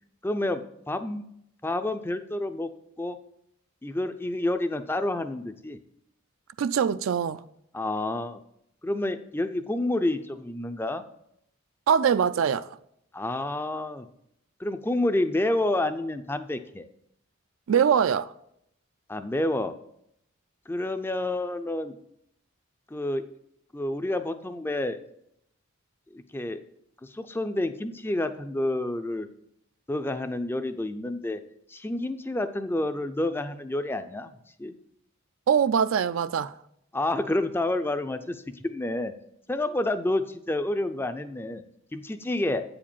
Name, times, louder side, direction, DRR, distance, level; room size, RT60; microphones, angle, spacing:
voice 1, 0.2-1.2 1.6-2.7 3.0-3.2 3.8-5.8 7.7-8.4 8.8-11.0 13.1-14.1 14.6-16.9 19.1-19.7 20.7-22.0 22.9-23.2 23.7-25.0 26.1-26.6 27.0-29.3 29.9-31.4 31.7-34.3 34.6-34.7 36.9-39.1 39.5-41.6 41.9-42.6, left 1 dB, 10° left, 0.4 m, -29 dB
voice 2, 6.6-7.4 11.9-12.7 17.7-18.3 35.5-36.5, right 7 dB, 70° right, 0.4 m, -23 dB
8.4 x 5.0 x 7.1 m
head